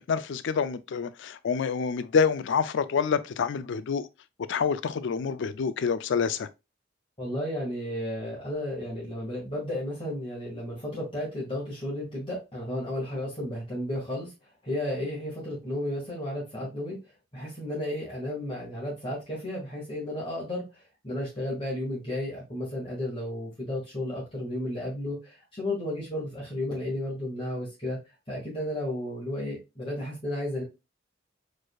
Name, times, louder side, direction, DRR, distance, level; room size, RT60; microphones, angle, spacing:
voice 1, 0.0-4.1 4.5-6.5, left 6 dB, 65° left, 0.4 m, -27 dB
voice 2, 7.2-14.3 14.6-17.0 17.3-28.0 28.3-30.6, left 1 dB, 30° left, 1.9 m, -33 dB
5.1 x 4.1 x 2.3 m
head